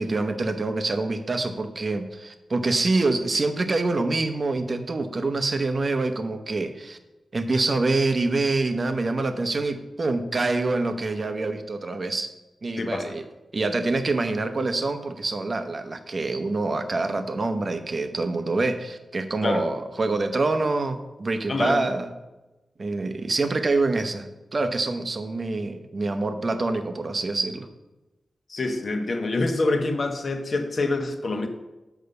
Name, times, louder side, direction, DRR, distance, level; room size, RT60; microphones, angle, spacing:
voice 1, 0.0-7.0 7.3-12.3 12.6-13.2 13.5-22.1 22.8-27.7, right 3 dB, 40° right, 8 dB, 0.8 m, -26 dB
voice 2, 12.8-13.1 19.4-19.6 21.5-21.8 28.5-31.5, left 2 dB, 50° left, 6 dB, 1.0 m, -26 dB
7.0 x 5.4 x 6.6 m, 1.1 s
wide cardioid pair, 95°, 0 cm